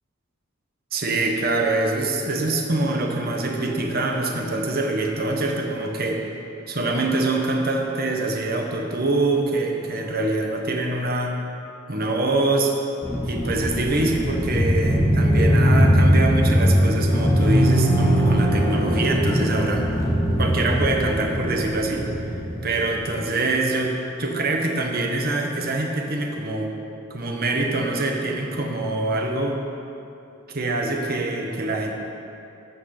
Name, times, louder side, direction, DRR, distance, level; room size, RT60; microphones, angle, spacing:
voice 1, 0.9-6.2 6.7-11.3 11.9-12.7 13.3-19.9 20.4-22.1 22.6-26.7 27.1-29.6 30.5-31.9, right 2 dB, 50° right, 1 dB, 1.3 m, -24 dB
sound 1, 13.0-23.2, equal, 15° left, 2.0 m, -20 dB
13.5 x 6.4 x 6.6 m, 2.7 s
head